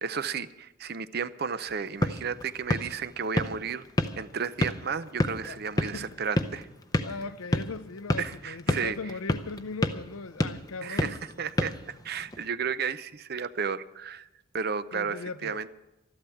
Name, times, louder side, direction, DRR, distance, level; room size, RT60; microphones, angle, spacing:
voice 1, 0.0-3.9 4.2-6.7 8.2-9.0 10.8-14.3 14.5-15.7, right 6 dB, 50° right, 0.6 m, -33 dB
sound 1, 1.7-12.5, left 1 dB, 20° left, 0.7 m, -32 dB
voice 2, 7.0-11.1 14.9-15.6, left 4 dB, 85° left, 0.6 m, -38 dB
13.5 x 12.0 x 7.1 m
head